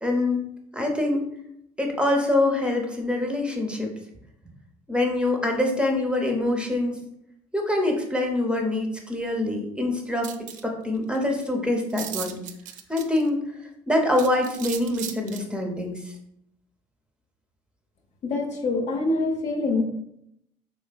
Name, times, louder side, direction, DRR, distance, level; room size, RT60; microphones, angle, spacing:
voice 1, 0.0-0.5 0.7-1.3 1.8-3.9 4.9-7.0 7.5-10.3 10.6-12.4 12.9-13.4 13.9-16.1, left 2 dB, 5° right, 2 dB, 0.6 m, -25 dB
sound 1, 10.2-10.6 11.1-11.2 11.4-11.5 11.9-13.3 14.1-15.4, right 10 dB, 60° right, 0.4 m, -36 dB
voice 2, 18.2-19.8, left 3 dB, 55° left, 2 dB, 0.7 m, -25 dB
3.2 x 3.1 x 2.2 m, 0.76 s
supercardioid pair, 75°, 15 cm